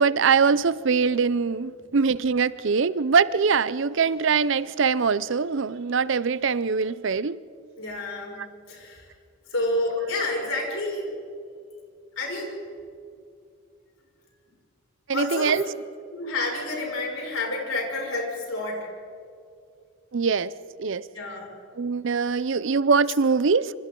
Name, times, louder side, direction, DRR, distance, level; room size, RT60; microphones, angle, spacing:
voice 1, 0.0-7.4 10.1-10.2 15.1-15.6 20.1-20.5 20.8-21.0 21.8-23.7, right 5 dB, 60° right, 17 dB, 0.5 m, -23 dB
voice 2, 7.8-9.1 9.5-11.1 12.2-12.6 15.1-15.5 16.1-18.9 21.1-21.5, left 2 dB, 75° left, -1 dB, 6.1 m, -29 dB
28.0 x 26.0 x 3.8 m, 2.4 s
head